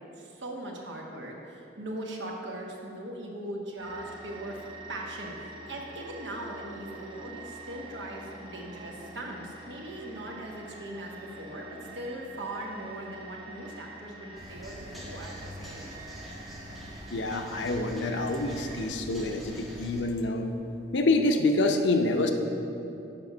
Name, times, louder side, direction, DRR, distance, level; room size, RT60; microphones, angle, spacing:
voice 1, 0.2-16.0, right 1 dB, 85° right, 0 dB, 1.2 m, -40 dB
sound 1, 3.8-18.9, right 2 dB, 30° right, 0.9 m, -46 dB
sound 2, 14.4-20.0, equal, ahead, 1.2 m, -44 dB
voice 2, 17.1-20.5 20.9-22.3, left 2 dB, 85° left, 5 dB, 0.7 m, -26 dB
7.7 x 5.3 x 6.0 m, 2.8 s
head